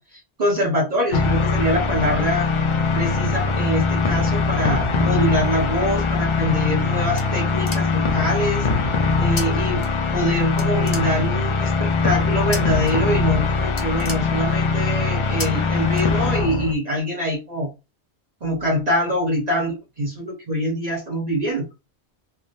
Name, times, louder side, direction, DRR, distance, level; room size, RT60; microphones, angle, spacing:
voice 1, 0.0-2.5 2.9-9.8 10.1-17.7 18.4-21.7, equal, 40° right, -3 dB, 0.9 m, -24 dB
sound 1, 1.1-16.7, left 4 dB, 55° left, 0.3 m, -21 dB
sound 2, 6.5-8.2 9.4-9.5 9.8-10.3 10.6-11.5 12.5-12.9 13.2-13.4 13.7-14.8 15.4-15.5 15.9-16.6, left 3 dB, 35° left, 0.8 m, -34 dB
3.4 x 2.0 x 2.6 m, 0.27 s
omnidirectional pair, 1.1 m